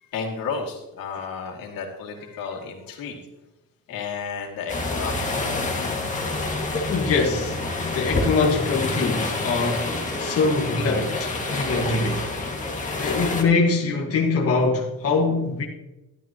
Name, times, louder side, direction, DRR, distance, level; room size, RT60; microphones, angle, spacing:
voice 1, 0.0-3.2 3.9-6.1, left 5 dB, 85° left, 2.5 m, -33 dB
sound 1, 4.7-13.4, left 2 dB, 20° left, 2.0 m, -28 dB
voice 2, 6.9-7.6 7.9-12.3 13.0-15.7, left 3 dB, 45° left, 1.6 m, -23 dB
14.5 x 12.0 x 3.0 m
cardioid pair, 155°, 33 cm